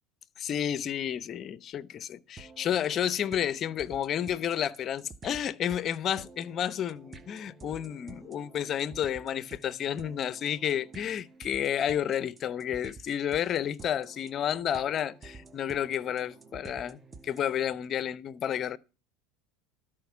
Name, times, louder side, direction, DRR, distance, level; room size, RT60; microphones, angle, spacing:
voice 1, 0.4-18.8, left 9 dB, 40° left, 0.6 m, -31 dB
sound 1, 2.4-17.6, right 4 dB, 20° right, 0.9 m, -50 dB
13.0 x 4.9 x 7.1 m
supercardioid pair, 115°, 0 cm